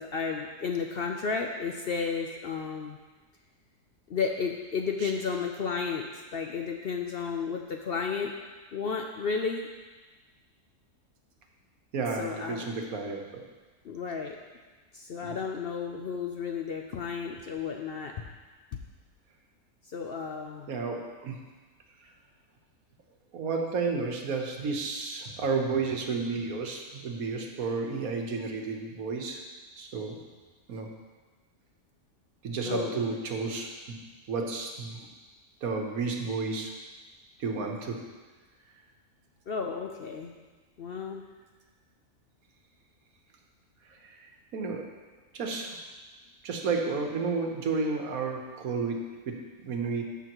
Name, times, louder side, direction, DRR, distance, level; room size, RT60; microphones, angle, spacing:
voice 1, 0.0-3.0 4.1-8.3 8.7-9.7 12.1-12.7 13.8-14.4 14.9-18.1 19.9-20.7 32.6-33.2 39.5-40.3 40.8-41.2, left 5 dB, 60° left, 2 dB, 0.6 m, -33 dB
voice 2, 11.9-13.2 15.2-15.3 20.7-21.4 22.0-22.1 23.3-29.4 29.8-30.2 30.7-30.9 32.4-34.0 34.3-35.1 35.6-36.7 37.4-38.0 44.0-44.8 45.3-45.8 46.4-50.0, right 4 dB, 80° right, 2 dB, 1.5 m, -32 dB
14.0 x 6.2 x 3.0 m, 1.3 s
omnidirectional pair, 1.5 m